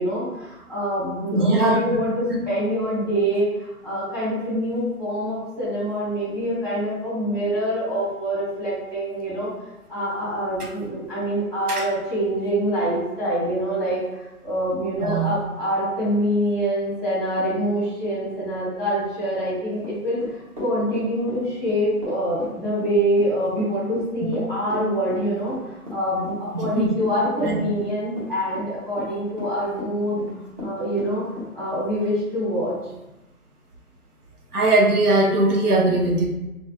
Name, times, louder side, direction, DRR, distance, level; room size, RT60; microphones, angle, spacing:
voice 1, 0.0-9.5 9.9-30.2 30.6-31.2 31.5-32.8, equal, ahead, -11 dB, 1.2 m, -25 dB
voice 2, 1.3-1.8 2.3-2.4 11.7-11.8 15.0-15.3 26.5-26.9 27.5-27.6 34.5-36.3, right 2 dB, 90° right, 0 dB, 0.9 m, -20 dB
Run / Walk footsteps, 19.8-31.5, left 2 dB, 25° right, 0.8 m, -35 dB
3.9 x 2.4 x 2.8 m, 1.0 s
figure-of-eight pair, 150°, 44 cm